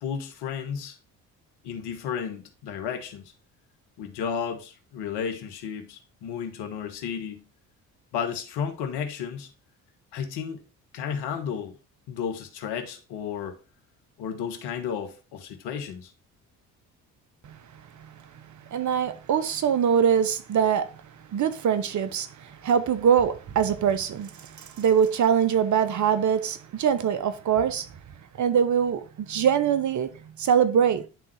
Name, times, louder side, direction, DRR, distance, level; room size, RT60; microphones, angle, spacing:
voice 1, 0.0-1.0 1.6-3.3 4.0-7.4 8.1-9.5 10.1-10.6 10.9-11.8 12.1-13.6 14.2-16.1, left 7 dB, 70° left, 1.4 m, -33 dB
voice 2, 18.7-20.9 21.3-27.9 28.4-30.1 30.4-31.0, right 8 dB, 45° right, 0.8 m, -23 dB
10.5 x 3.6 x 3.3 m
hypercardioid pair, 55°, 42 cm